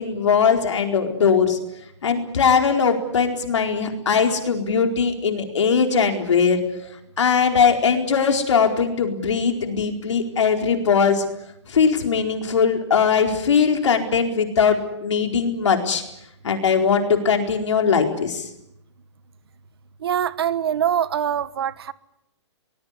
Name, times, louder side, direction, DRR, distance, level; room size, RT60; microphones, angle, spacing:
voice 1, 0.0-1.6 2.0-6.6 7.2-11.2 11.7-16.0 16.4-18.5, left 6 dB, 80° left, 4 dB, 4.4 m, -20 dB
voice 2, 20.0-21.9, right 9 dB, 55° right, 16 dB, 1.4 m, -23 dB
24.0 x 20.0 x 9.8 m, 0.82 s
hypercardioid pair, 170°, 15 cm